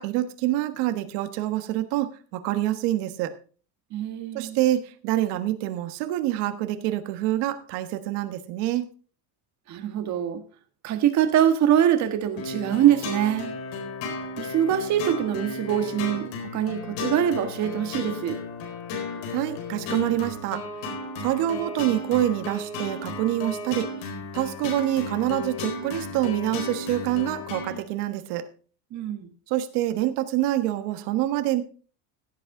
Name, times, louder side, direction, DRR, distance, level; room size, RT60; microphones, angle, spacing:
voice 1, 0.0-3.3 4.3-8.8 19.3-20.6 21.2-23.9 24.3-28.4 29.5-31.6, right 14 dB, 75° right, 1.5 m, -26 dB
voice 2, 3.9-4.6 9.7-10.4 10.8-13.5 14.4-16.3 16.5-18.4 28.9-29.3, right 10 dB, 40° right, 1.6 m, -23 dB
sound 1, 12.4-27.8, left 3 dB, 70° left, 4.3 m, -34 dB
16.0 x 8.4 x 3.8 m
cardioid pair, 165°, 41 cm